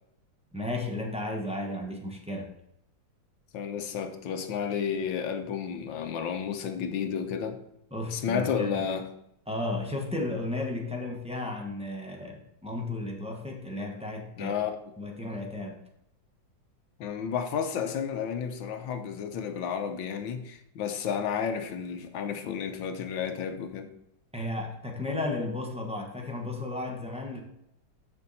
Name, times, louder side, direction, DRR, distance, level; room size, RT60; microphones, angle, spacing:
voice 1, 0.5-2.5 7.9-8.9 9.5-14.5 15.0-15.8 24.3-27.4, left 2 dB, 5° right, 0.9 m, -34 dB
voice 2, 3.5-7.6 8.1-9.1 14.4-14.8 17.0-24.0, left 7 dB, 75° left, 1.5 m, -32 dB
7.6 x 6.7 x 4.1 m
omnidirectional pair, 2.2 m